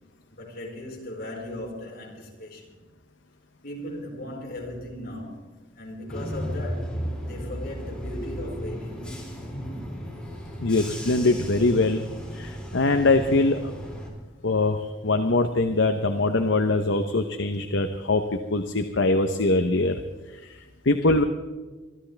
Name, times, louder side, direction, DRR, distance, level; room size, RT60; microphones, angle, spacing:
voice 1, 0.3-2.7 3.6-9.1 14.1-14.7 18.2-18.4 20.3-20.7, left 1 dB, 55° left, 4.9 m, -38 dB
Bus / Engine, 6.1-14.1, equal, 5° left, 3.9 m, -34 dB
voice 2, 10.6-12.0 12.3-13.7 14.4-20.0 20.4-20.6 20.8-21.2, left 2 dB, 70° left, 0.9 m, -23 dB
25.0 x 13.5 x 3.4 m
head